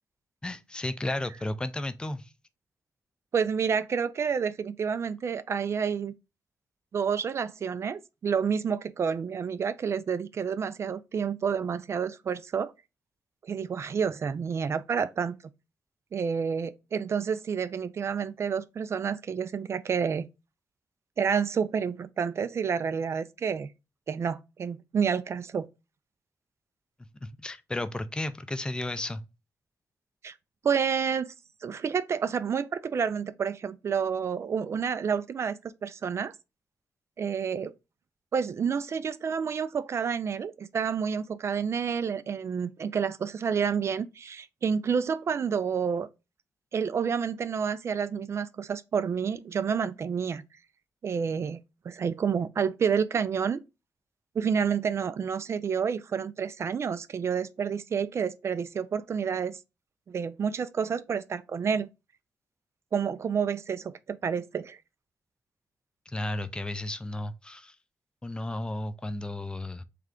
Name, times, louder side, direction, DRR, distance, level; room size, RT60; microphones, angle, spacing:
voice 1, 0.4-2.3 27.2-29.2 66.1-67.8 68.2-69.8, left 1 dB, 15° left, 0.4 m, -33 dB
voice 2, 3.3-6.1 6.9-12.7 13.4-15.4 16.1-20.2 21.2-23.7 24.1-25.7 30.2-30.3 30.6-31.3 31.6-36.3 37.2-37.7 38.3-46.1 46.7-50.4 51.0-51.6 51.9-53.6 54.4-59.6 60.1-61.9 62.9-64.8, right 6 dB, 50° right, 0.3 m, -29 dB
3.5 x 3.3 x 3.6 m
cardioid pair, 110°, 6 cm